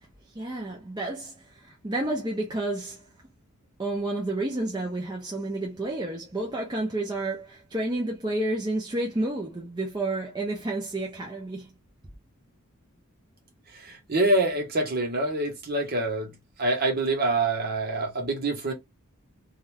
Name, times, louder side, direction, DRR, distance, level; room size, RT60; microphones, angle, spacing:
voice 1, 0.3-3.0 3.8-11.7, right 2 dB, 20° right, 0.6 m, -30 dB
voice 2, 13.7-16.3 16.6-18.7, right 2 dB, 45° right, 1.0 m, -26 dB
2.6 x 2.4 x 3.3 m
head